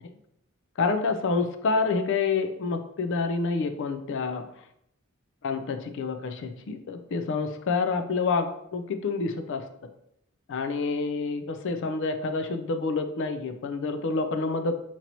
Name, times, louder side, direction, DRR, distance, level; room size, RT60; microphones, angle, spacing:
voice 1, 0.8-4.4 5.4-9.6 10.5-14.7, left 4 dB, 60° left, 7 dB, 0.4 m, -28 dB
4.5 x 2.9 x 2.6 m, 0.75 s
head